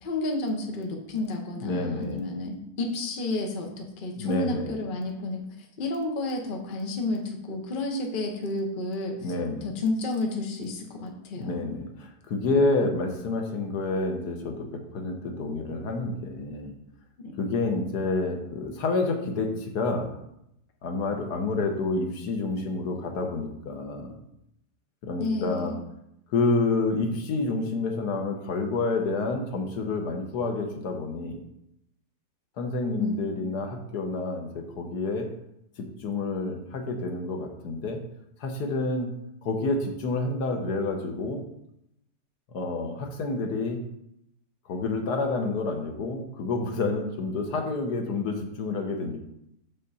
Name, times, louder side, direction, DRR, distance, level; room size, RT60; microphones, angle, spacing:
voice 1, 0.0-5.4 5.8-9.2 9.6-11.8 17.2-17.4 25.2-25.7 33.0-33.3, left 2 dB, 35° left, 1 dB, 1.0 m, -31 dB
voice 2, 1.6-2.3 4.2-4.8 9.2-9.7 11.4-16.7 17.4-20.1 20.8-24.1 25.0-25.8 26.3-31.4 32.6-35.3 35.8-38.0 38.4-39.1 39.4-41.4 42.5-43.8 44.6-49.2, left 3 dB, 75° left, 3 dB, 1.4 m, -29 dB
6.6 x 5.6 x 4.1 m, 0.80 s
omnidirectional pair, 1.8 m